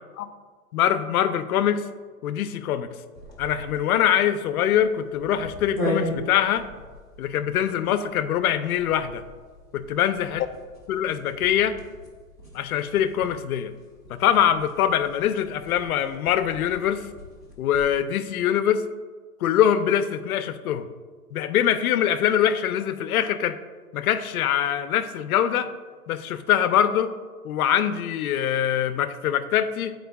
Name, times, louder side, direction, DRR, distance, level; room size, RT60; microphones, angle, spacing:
voice 1, 0.7-1.9 2.2-2.9 3.4-6.7 7.2-9.2 9.7-10.5 10.9-11.8 12.5-13.7 14.1-17.1 17.6-18.9 19.4-20.9 21.3-23.6 23.9-25.7 26.1-27.1 27.4-29.9, left 10 dB, 65° left, 12 dB, 0.6 m, -23 dB
sound 1, 3.1-18.1, left 1 dB, 15° right, 0.3 m, -38 dB
12.5 x 4.4 x 2.3 m, 1.5 s
hypercardioid pair, 145°, 48 cm